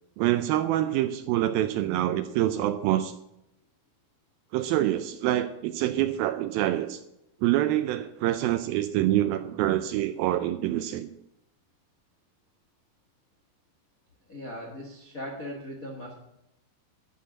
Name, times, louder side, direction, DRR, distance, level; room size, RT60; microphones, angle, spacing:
voice 1, 0.2-3.1 4.5-7.0 7.4-11.1, right 13 dB, 80° right, 11 dB, 2.1 m, -26 dB
voice 2, 14.3-16.1, equal, 90° left, -1 dB, 0.7 m, -39 dB
12.0 x 5.6 x 8.6 m, 0.83 s
omnidirectional pair, 4.6 m